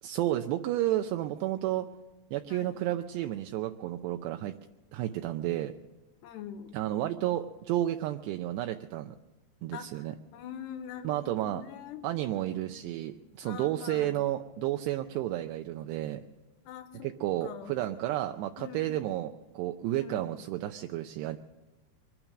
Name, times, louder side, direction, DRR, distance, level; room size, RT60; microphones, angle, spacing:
voice 1, 0.0-1.9 2.3-4.6 4.9-5.7 6.7-9.2 9.6-10.2 11.0-11.6 12.0-16.2 17.0-21.4, right 14 dB, 80° right, 6 dB, 2.7 m, -32 dB
voice 2, 6.2-6.8 9.7-12.8 13.4-14.2 16.6-17.1 17.4-17.8 18.6-19.1 19.9-20.4, left 8 dB, 75° left, 8 dB, 3.1 m, -44 dB
24.5 x 9.0 x 6.4 m, 1.2 s
omnidirectional pair, 5.1 m